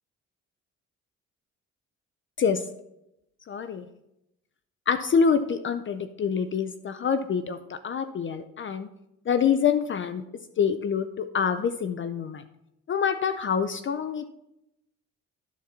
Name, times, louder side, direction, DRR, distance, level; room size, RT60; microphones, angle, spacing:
voice 1, 3.5-3.8 4.9-8.9 9.3-10.2 10.6-12.4 12.9-14.3, left 6 dB, 40° left, 10 dB, 0.5 m, -26 dB
12.5 x 4.3 x 4.1 m, 0.86 s
cardioid pair, 90°, 30 cm